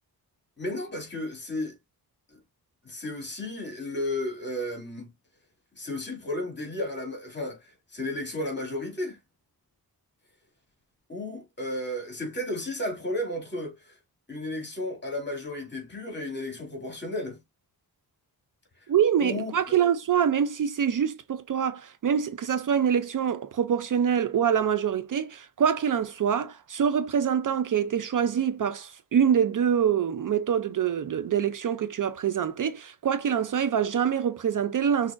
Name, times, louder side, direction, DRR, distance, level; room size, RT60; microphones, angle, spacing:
voice 1, 0.6-1.7 2.3-2.4 2.8-5.1 5.8-9.2 11.1-14.0 14.3-17.4 19.2-19.7, left 1 dB, 30° left, 2.3 m, -33 dB
voice 2, 18.9-35.1, right 8 dB, 55° right, 0.5 m, -25 dB
6.1 x 2.7 x 2.4 m
wide cardioid pair, 130°, 38 cm